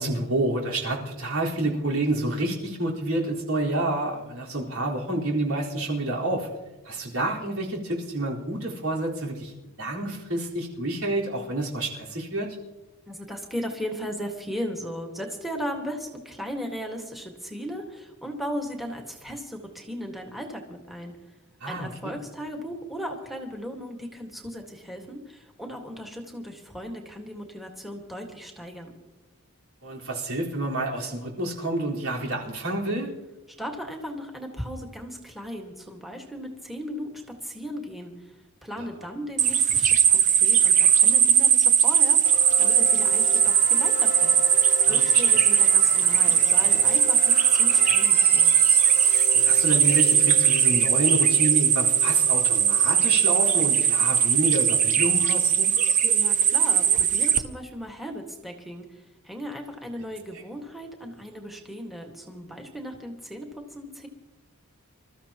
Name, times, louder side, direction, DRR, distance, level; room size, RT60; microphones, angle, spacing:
voice 1, 0.0-6.5 6.8-9.5 9.8-12.6 21.6-22.1 29.8-33.1 38.8-38.9 44.9-45.2 49.3-55.7, right 2 dB, 80° right, -3 dB, 4.1 m, -29 dB
voice 2, 13.1-21.1 21.6-28.9 33.6-44.4 44.8-48.5 56.0-64.1, equal, ahead, 2 dB, 1.6 m, -37 dB
sound 1, 39.4-57.4, right 8 dB, 35° right, 0.8 m, -19 dB
sound 2, 42.2-54.0, left 7 dB, 45° left, 0.8 m, -37 dB
26.5 x 14.0 x 2.9 m, 1.1 s
head